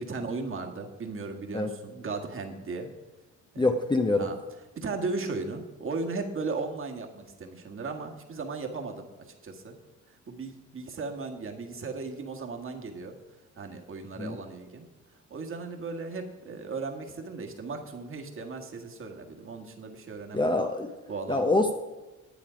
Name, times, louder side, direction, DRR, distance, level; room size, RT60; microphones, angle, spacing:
voice 1, 0.0-2.9 3.5-3.7 4.2-4.4 4.7-9.1 9.4-9.8 10.1-13.2 13.6-14.9 15.3-20.7 21.1-21.6, right 3 dB, 45° right, 3 dB, 1.7 m, -36 dB
voice 2, 3.6-4.3 14.2-14.4 20.3-20.9 21.3-21.7, left 2 dB, 15° left, 4 dB, 0.7 m, -25 dB
10.5 x 8.5 x 5.1 m, 1.1 s
cardioid pair, 90°, 30 cm